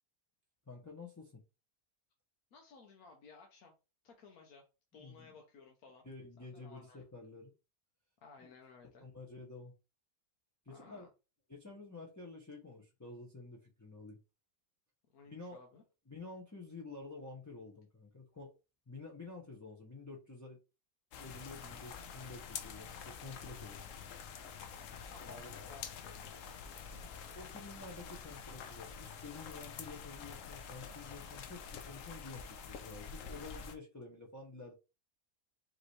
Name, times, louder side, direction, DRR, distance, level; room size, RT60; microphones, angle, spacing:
voice 1, 0.7-1.4 5.0-5.3 6.0-7.5 9.0-9.7 10.7-11.1 11.5-14.2 15.3-15.6 16.1-18.5 18.9-20.6 21.2-23.8 25.3-25.8 27.3-34.7, left 3 dB, 20° left, -1 dB, 0.6 m, -50 dB
voice 2, 2.5-3.7 4.0-4.7 4.9-6.1 6.4-7.0 8.2-9.1 10.7-11.1 15.1-15.8 24.7-26.4, left 4 dB, 85° left, 2 dB, 1.3 m, -58 dB
sound 1, 21.1-33.8, left 6 dB, 70° left, 1.0 m, -47 dB
5.1 x 3.0 x 3.2 m, 0.30 s
omnidirectional pair, 1.5 m